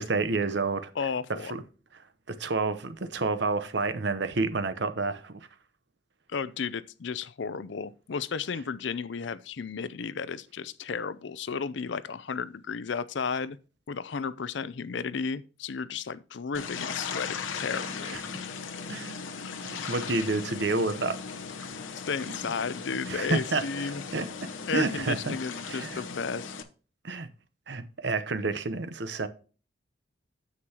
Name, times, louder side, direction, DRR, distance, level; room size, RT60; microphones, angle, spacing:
voice 1, 0.0-0.9 1.5-1.6 2.3-5.5 18.1-18.2 18.9-19.2 19.6-21.2 21.6-21.7 22.3-22.4 23.1-25.4 25.7-26.0 27.0-27.3 27.7-29.3, right 3 dB, 60° right, 0.8 m, -30 dB
voice 2, 1.0-1.5 6.3-13.6 13.9-18.2 22.1-24.0 24.7-26.5, left 5 dB, 65° left, 0.5 m, -33 dB
sound 1, 16.5-26.6, left 5 dB, 80° left, 0.9 m, -38 dB
9.7 x 7.7 x 2.9 m
head